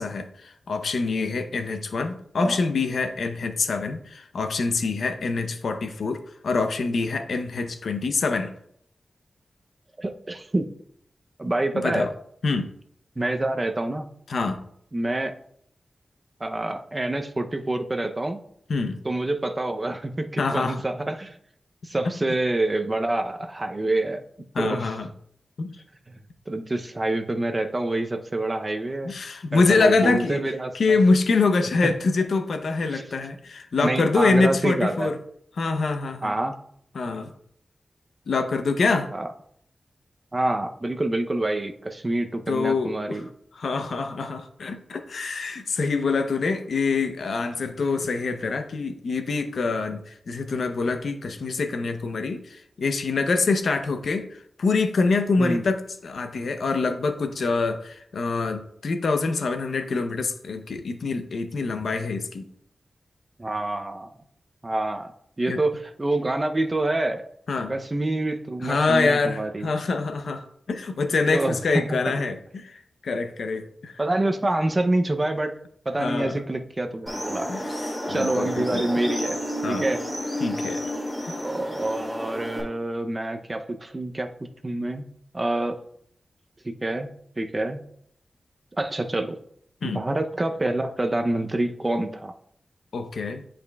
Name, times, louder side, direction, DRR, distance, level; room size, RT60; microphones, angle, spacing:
voice 1, 0.0-8.5 11.8-12.1 12.4-12.7 14.3-14.6 18.7-19.0 20.4-20.8 24.5-25.1 25.6-25.7 29.0-30.4 30.7-35.2 35.6-36.3 36.9-37.3 38.3-39.1 42.5-43.2 43.6-62.5 65.5-65.6 67.5-67.7 68.6-74.0 76.0-76.4 77.5-78.9 79.6-79.9 80.4-80.9 81.3-81.4 89.8-90.0 92.9-93.4, left 4 dB, 85° left, 0.6 m, -25 dB
voice 2, 10.0-10.7 11.4-12.1 13.2-14.1 14.9-15.3 16.4-18.4 19.0-21.4 21.8-24.2 24.6-24.9 26.1-26.2 26.5-29.2 29.5-31.0 31.8-31.9 32.9-33.0 33.8-35.1 36.2-36.5 39.1-39.3 40.3-43.2 55.4-55.6 63.4-64.1 64.6-65.1 65.4-67.2 67.7-69.7 71.3-72.2 74.0-75.6 75.9-77.5 78.1-79.4 79.6-80.0 81.4-85.0 85.3-85.8 86.6-87.1 87.4-87.8 88.8-89.4 89.8-92.3, right 2 dB, 25° right, 0.6 m, -27 dB
sound 1, 77.1-82.6, equal, 10° left, 2.3 m, -31 dB
10.5 x 5.0 x 2.3 m
wide cardioid pair, 115°, 0 cm